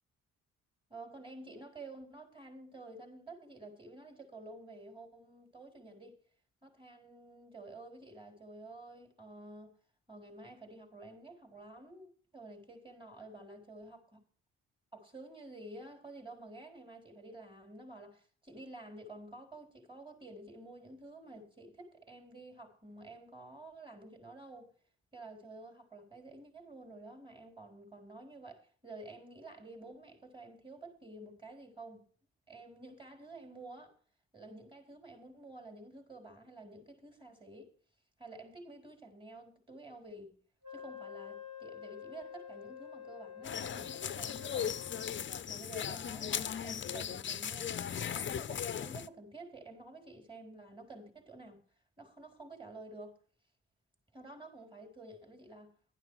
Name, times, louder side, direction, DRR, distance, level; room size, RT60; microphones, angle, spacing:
voice 1, 0.9-6.2 6.6-9.7 10.1-14.0 14.9-24.7 25.1-32.1 32.5-34.0 34.3-37.7 38.2-40.4 40.7-44.9 45.5-51.6 52.0-53.2 54.1-55.7, right 2 dB, 15° right, 3.8 m, -50 dB
Wind instrument woodwind instrument, 40.6-45.4, left 8 dB, 60° right, 2.7 m, -48 dB
sound 1, 43.4-49.1, left 9 dB, 40° left, 0.6 m, -38 dB
11.5 x 11.0 x 4.7 m
cardioid pair, 90°, 30 cm